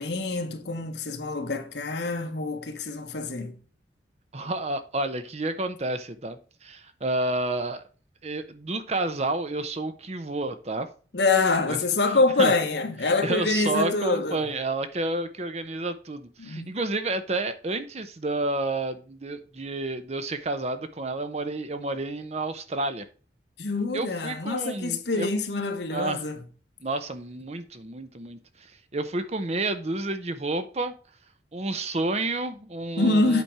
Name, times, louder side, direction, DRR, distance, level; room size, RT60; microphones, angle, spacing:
voice 1, 0.0-3.6 11.1-14.5 16.4-16.7 23.6-26.4 33.0-33.4, left 3 dB, 70° left, 1.2 m, -25 dB
voice 2, 4.3-7.8 8.2-10.9 11.7-11.8 12.1-12.5 13.2-23.1 23.9-25.3 25.9-26.3 26.8-30.9 31.5-33.4, right 2 dB, 35° right, 0.7 m, -30 dB
8.3 x 4.4 x 4.8 m
head